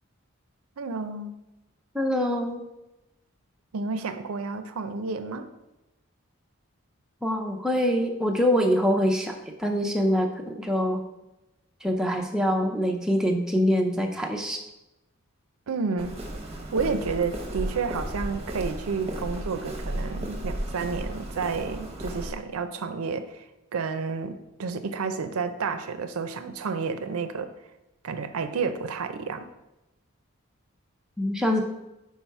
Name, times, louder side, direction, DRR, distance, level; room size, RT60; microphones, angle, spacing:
voice 1, 0.8-1.3 3.7-5.5 15.7-16.2 16.7-23.5 23.7-27.5 28.0-29.5, right 4 dB, 90° right, 9 dB, 0.5 m, -30 dB
voice 2, 1.9-2.6 7.2-11.0 11.8-14.6 31.2-31.6, equal, 5° right, 1 dB, 0.5 m, -24 dB
Walk footsteps, 16.0-22.3, right 1 dB, 30° right, 0.7 m, -34 dB
5.6 x 4.6 x 4.5 m, 0.97 s
head